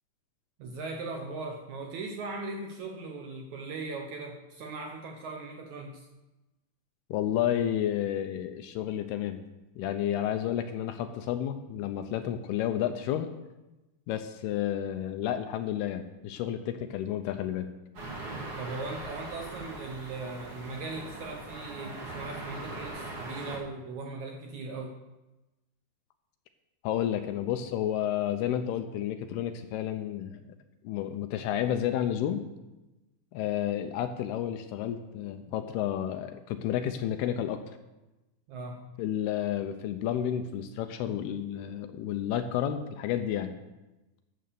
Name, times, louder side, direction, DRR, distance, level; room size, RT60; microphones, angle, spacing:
voice 1, 0.6-6.1 18.6-25.0 38.5-38.8, right 3 dB, 80° right, 2 dB, 1.6 m, -39 dB
voice 2, 7.1-9.4 9.8-13.3 14.1-17.7 26.8-30.5 30.8-32.4 33.3-37.6 39.0-43.6, left 10 dB, 80° left, 8 dB, 2.5 m, -31 dB
sound 1, 17.9-23.6, right 2 dB, 45° right, 2.2 m, -40 dB
13.0 x 7.7 x 6.8 m, 1.0 s
omnidirectional pair, 4.9 m